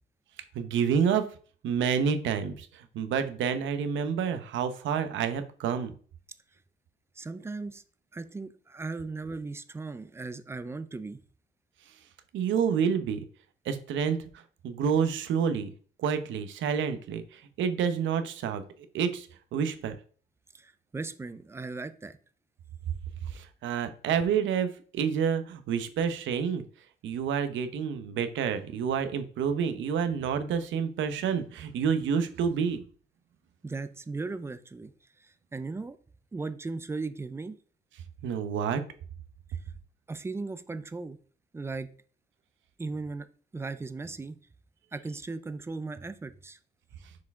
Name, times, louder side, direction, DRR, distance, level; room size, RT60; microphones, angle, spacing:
voice 1, 0.5-1.3 1.6-5.9 12.3-13.2 13.6-15.7 16.0-18.6 18.9-20.0 23.3-26.6 27.0-32.8 38.2-38.8, right 7 dB, 75° right, 9 dB, 0.9 m, -28 dB
voice 2, 7.2-7.8 8.1-11.2 20.5-22.2 33.6-34.9 35.2-36.0 36.3-37.5 40.1-41.2 41.5-41.9 42.8-43.3 43.5-44.4 44.9-46.6, right 3 dB, 15° right, 11 dB, 0.4 m, -37 dB
6.3 x 4.8 x 3.6 m, 0.43 s
cardioid pair, 160°, 20 cm